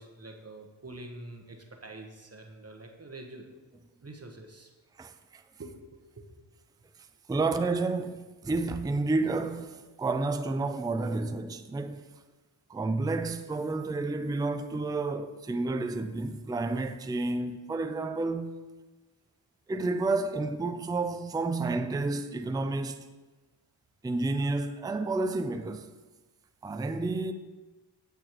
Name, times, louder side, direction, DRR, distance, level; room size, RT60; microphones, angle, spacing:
voice 1, 0.0-3.5 4.0-4.7 5.6-6.3 17.4-17.6, right 2 dB, 30° right, 1.1 m, -46 dB
voice 2, 5.0-5.4 7.3-12.0 12.7-18.5 19.7-23.0 24.0-25.9 26.6-27.3, right 3 dB, 10° right, 0.4 m, -30 dB
8.7 x 6.6 x 3.1 m
cardioid pair, 40°, 47 cm